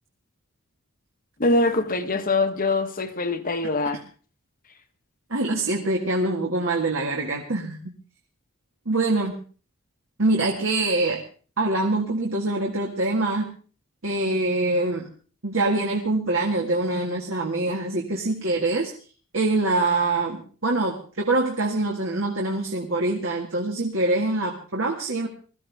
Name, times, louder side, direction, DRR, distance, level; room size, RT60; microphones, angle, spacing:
voice 1, 1.4-4.0, left 2 dB, 40° left, 7 dB, 1.3 m, -23 dB
voice 2, 5.3-7.9 8.9-9.4 10.2-11.2 11.6-13.5 14.0-15.1 15.4-18.9 19.3-25.3, right 2 dB, 65° right, 0 dB, 2.0 m, -24 dB
21.5 x 14.5 x 3.5 m, 0.39 s
head